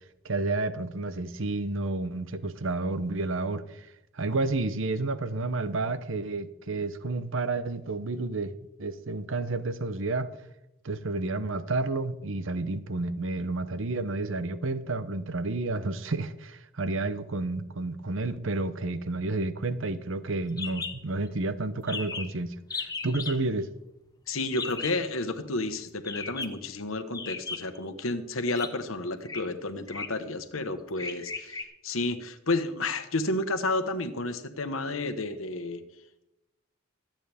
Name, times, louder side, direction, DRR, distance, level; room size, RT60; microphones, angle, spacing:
voice 1, 0.2-3.9 4.1-10.3 10.8-23.7, right 2 dB, 70° right, 0.8 m, -30 dB
sound 1, 20.6-21.0 21.2-21.3 21.6-21.7 21.9-22.3 22.7-23.4 24.6-25.0 26.0-26.6 27.1-27.8 28.5-28.7 29.2-29.4 29.9-30.2 31.0-31.6, left 4 dB, 20° left, 0.8 m, -36 dB
voice 2, 24.3-35.8, left 2 dB, 85° left, 1.3 m, -31 dB
24.5 x 8.9 x 3.5 m
head